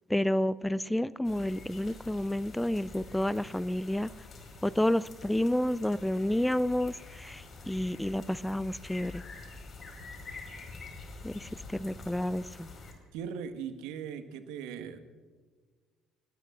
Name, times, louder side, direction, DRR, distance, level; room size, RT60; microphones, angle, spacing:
voice 1, 0.1-4.1 4.6-9.2 11.2-12.7, left 1 dB, 5° left, 19 dB, 0.4 m, -30 dB
sound 1, 1.2-12.9, left 3 dB, 45° left, 4.9 m, -47 dB
voice 2, 13.1-15.0, right 7 dB, 70° right, 8 dB, 1.5 m, -39 dB
29.5 x 19.0 x 2.5 m, 1.5 s
hypercardioid pair, 55°, 0 cm